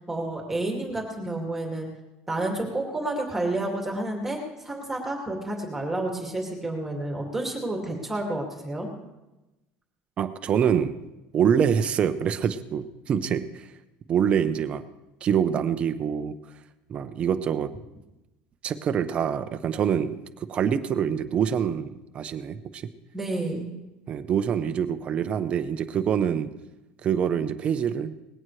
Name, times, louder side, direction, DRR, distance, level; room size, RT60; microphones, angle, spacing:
voice 1, 0.1-1.9 2.3-4.4 4.6-8.9 23.1-23.7, right 2 dB, 5° right, 0 dB, 2.3 m, -30 dB
voice 2, 10.2-11.0 11.3-13.5 14.1-14.8 15.2-16.4 16.9-17.7 18.6-20.2 20.5-22.8 24.1-26.5 27.0-28.1, right 8 dB, 30° right, 9 dB, 0.8 m, -25 dB
20.0 x 16.5 x 3.2 m, 1.0 s
cardioid pair, 165°, 4 cm